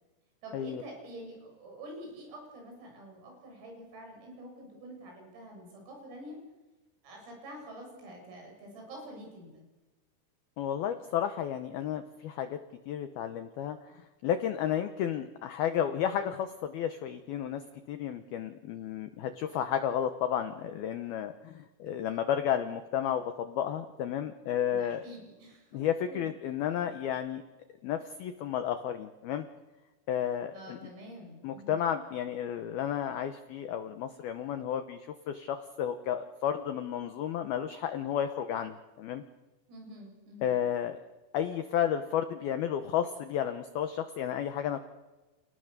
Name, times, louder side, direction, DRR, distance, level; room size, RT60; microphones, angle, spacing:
voice 1, 0.4-6.4 7.0-9.6 24.7-26.3 30.5-31.9 39.7-40.5, right 1 dB, 80° right, 1 dB, 9.9 m, -47 dB
voice 2, 10.6-12.6 12.9-13.8 14.2-17.6 17.9-25.0 25.7-27.4 27.8-29.5 30.1-30.9 31.4-39.2 40.4-41.0 41.3-44.8, left 9 dB, 90° left, 8 dB, 2.1 m, -32 dB
30.0 x 28.0 x 6.8 m, 1.2 s
omnidirectional pair, 6.0 m